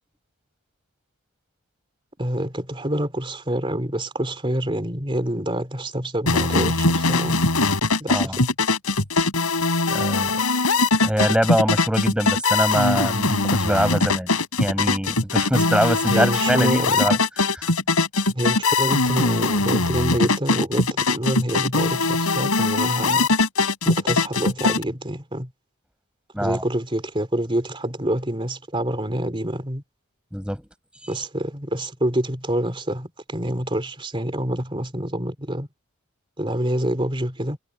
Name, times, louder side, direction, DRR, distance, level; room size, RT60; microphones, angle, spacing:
voice 1, 2.2-7.4 8.0-8.4 16.1-17.0 18.3-23.3 23.9-25.5 26.4-29.8 31.1-35.7 36.4-37.6, right 1 dB, 25° right, 3.3 m, -26 dB
sound 1, 6.3-24.8, left 3 dB, 85° left, 4.6 m, -21 dB
voice 2, 8.1-8.4 9.9-10.4 11.0-14.3 14.6-17.2 17.5-17.7 26.3-26.6 30.3-30.6 31.0-31.1, equal, 5° right, 6.8 m, -23 dB
head